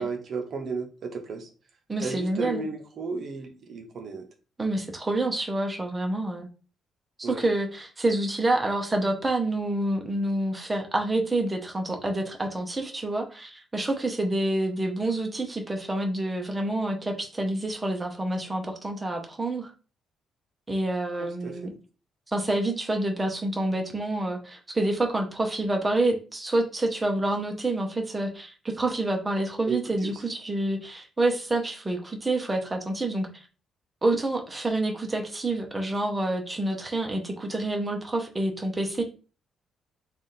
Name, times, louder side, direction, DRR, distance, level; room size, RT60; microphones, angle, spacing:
voice 1, 0.0-1.5 2.0-4.3 7.2-7.4 21.1-21.7 29.7-30.2, right 4 dB, 55° right, 4 dB, 0.8 m, -34 dB
voice 2, 1.9-2.6 4.6-6.5 7.2-19.7 20.7-21.7 22.3-33.4 34.0-39.0, right 2 dB, 20° right, 2 dB, 0.8 m, -28 dB
3.4 x 2.4 x 4.1 m, 0.35 s
cardioid pair, 90°, 0 cm